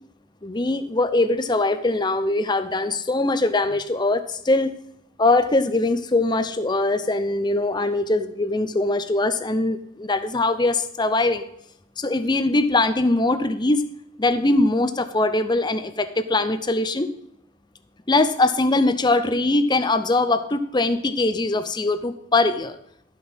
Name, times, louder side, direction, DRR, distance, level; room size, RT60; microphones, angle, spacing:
voice 1, 0.4-4.7 5.2-11.5 12.0-13.8 14.2-17.1 18.1-22.8, left 2 dB, 20° left, 11 dB, 0.6 m, -22 dB
12.0 x 6.1 x 5.4 m, 0.76 s
head